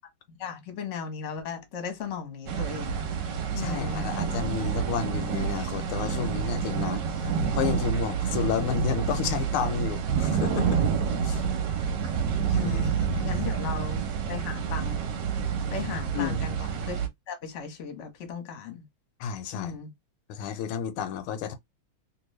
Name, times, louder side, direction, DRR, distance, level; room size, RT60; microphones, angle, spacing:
voice 1, 0.3-3.1 3.5-4.1 12.5-12.9 13.2-15.0 15.7-17.0 17.3-18.9 19.5-19.9, left 6 dB, 45° left, 1.1 m, -36 dB
sound 1, 2.5-17.1, right 7 dB, 65° right, 1.2 m, -28 dB
voice 2, 3.6-10.8 11.2-11.4 12.5-13.3 16.1-16.4 19.2-19.8 20.3-21.6, left 8 dB, 85° left, 1.5 m, -31 dB
3.0 x 2.9 x 3.1 m
omnidirectional pair, 2.3 m